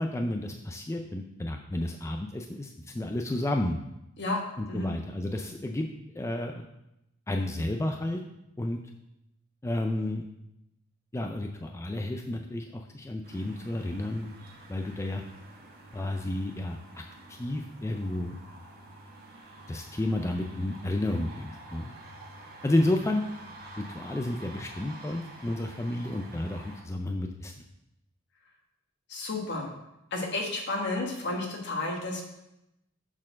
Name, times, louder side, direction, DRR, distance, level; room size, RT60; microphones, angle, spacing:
voice 1, 0.0-3.8 4.6-5.9 6.1-6.7 7.3-8.2 8.6-8.8 9.6-10.2 11.1-14.3 14.7-15.2 15.9-16.8 17.3-18.4 19.7-21.9 22.6-23.2 23.8-27.5, left 1 dB, 15° left, 3 dB, 0.4 m, -31 dB
sound 1, 13.2-26.8, right 2 dB, 50° right, 1.3 m, -48 dB
voice 2, 29.1-29.7 30.1-32.2, left 2 dB, 60° left, 1 dB, 1.4 m, -31 dB
6.0 x 4.4 x 6.2 m, 0.88 s
head